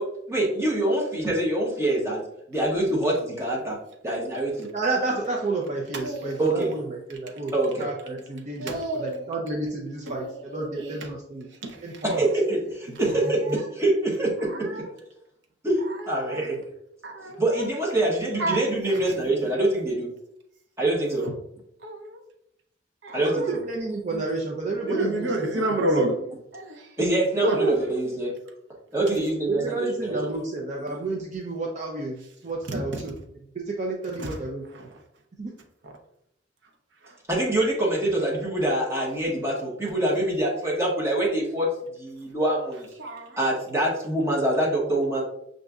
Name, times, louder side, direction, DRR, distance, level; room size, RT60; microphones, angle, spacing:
voice 1, 0.0-2.2 2.5-3.8 4.0-4.7 6.4-6.7 7.5-7.9 12.0-14.7 15.6-16.6 17.4-20.1 20.8-21.3 23.1-23.6 24.1-24.2 27.0-28.3 28.9-30.3 30.9-31.0 37.3-42.9 43.4-45.2, right 1 dB, 15° right, -4 dB, 0.9 m, -25 dB
voice 2, 4.7-11.5 11.8-12.3 23.2-25.5 25.8-26.2 29.5-33.1 33.5-34.6 35.4-35.5, right 3 dB, 35° right, -1 dB, 0.5 m, -31 dB
voice 3, 5.9-6.6 8.6-9.3 10.0-11.0 11.6-12.0 13.2-13.6 14.5-14.9 16.1-16.4 17.0-17.6 18.4-18.6 18.9-19.1 21.2-21.3 21.8-22.2 23.0-23.6 24.8-26.1 26.5-26.9 27.4-27.8 32.7-33.0 34.2-34.3 34.8-34.9 37.0-37.1 43.0-43.4, right 1 dB, 70° right, 2 dB, 0.8 m, -30 dB
6.2 x 2.6 x 2.3 m, 0.78 s
head